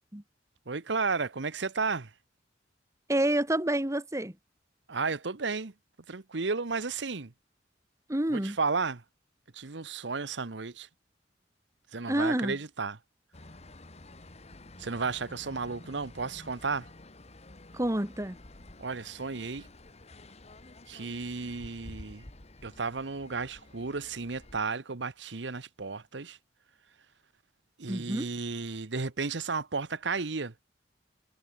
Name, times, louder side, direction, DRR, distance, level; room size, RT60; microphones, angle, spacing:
voice 1, 0.7-2.1 4.9-5.7 6.1-7.3 8.3-9.0 9.5-10.9 11.9-13.0 14.8-16.9 18.8-19.7 20.9-22.2 22.6-26.4 27.8-30.5, right 4 dB, 75° right, 1.1 m, -33 dB
voice 2, 3.1-4.3 8.1-8.6 12.1-12.6 17.7-18.4 27.9-28.3, right 1 dB, 15° right, 1.5 m, -28 dB
sound 1, 13.3-24.6, left 2 dB, 35° left, 1.8 m, -51 dB
head